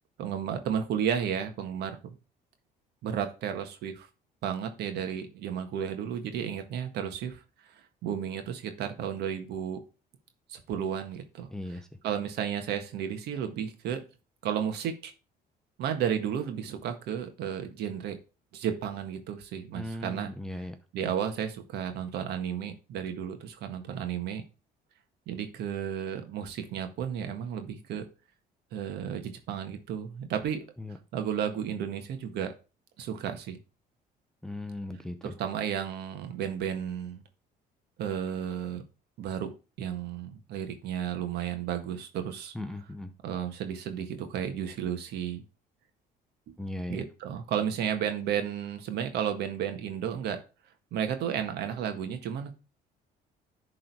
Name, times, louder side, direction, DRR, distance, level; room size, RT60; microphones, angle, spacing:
voice 1, 0.2-2.1 3.0-4.1 4.4-9.8 10.5-14.0 14.4-15.1 15.8-18.2 18.5-20.3 20.9-24.4 25.3-28.0 28.7-30.6 31.1-32.5 33.0-33.6 35.2-37.2 38.0-38.8 39.2-39.5 39.8-42.5 43.2-45.4 46.9-50.4 50.9-52.5, right 8 dB, 75° right, 7 dB, 1.6 m, -33 dB
voice 2, 11.5-11.9 19.7-20.7 30.8-31.0 34.4-35.3 42.5-43.1 46.6-47.0, left 1 dB, 5° left, 7 dB, 0.7 m, -37 dB
11.0 x 3.9 x 4.6 m, 0.32 s
cardioid pair, 110°, 17 cm